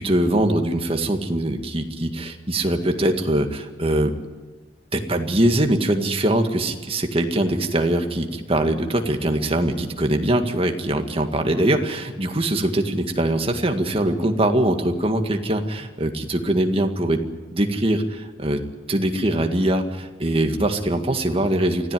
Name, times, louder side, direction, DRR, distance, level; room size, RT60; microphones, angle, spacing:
voice 1, 0.0-4.1 4.9-17.2 17.5-18.6 18.9-21.9, right 1 dB, 30° right, 5 dB, 1.9 m, -22 dB
25.0 x 16.0 x 9.3 m, 1.2 s
head